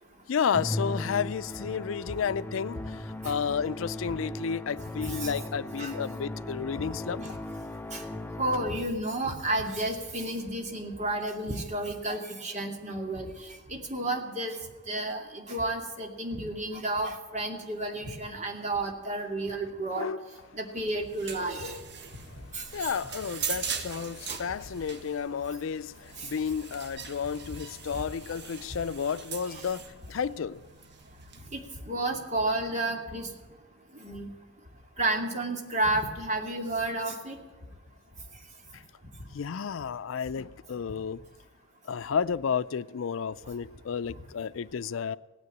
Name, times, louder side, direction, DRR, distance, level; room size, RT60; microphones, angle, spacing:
voice 1, 0.3-7.3 19.9-20.2 22.7-30.6 39.3-41.2 41.9-45.2, left 6 dB, 90° left, 0.4 m, -32 dB
Musical instrument, 0.5-9.1, left 1 dB, 10° left, 0.5 m, -37 dB
voice 2, 5.0-5.3 5.8-6.0 7.2-7.3 7.9-8.0 8.4-14.6 14.9-20.1 20.5-21.8 22.5-22.9 24.3-24.4 26.2-26.3 29.4-29.6 31.5-33.3 33.9-34.3 35.0-37.4, right 2 dB, 35° right, 2.4 m, -31 dB
sound 1, 20.8-31.5, right 6 dB, 60° right, 1.3 m, -41 dB
17.0 x 9.5 x 8.4 m
head